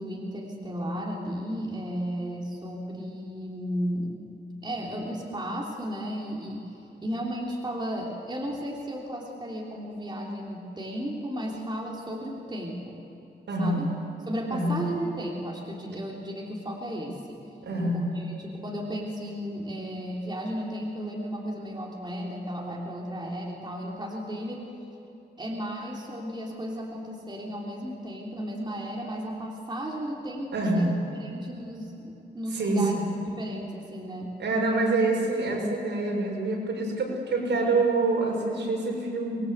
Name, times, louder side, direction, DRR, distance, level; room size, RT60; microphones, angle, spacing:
voice 1, 0.0-4.3 4.6-13.1 13.6-13.9 14.2-17.4 17.9-24.7 25.4-30.9 31.2-33.0 33.3-34.3, equal, 25° right, -2 dB, 3.4 m, -34 dB
voice 2, 13.5-14.0 14.5-14.8 17.6-18.2 30.5-30.9 32.5-33.0 34.4-39.4, right 2 dB, 75° right, -1 dB, 6.8 m, -26 dB
26.0 x 21.5 x 8.0 m, 2.9 s
wide cardioid pair, 140°, 19 cm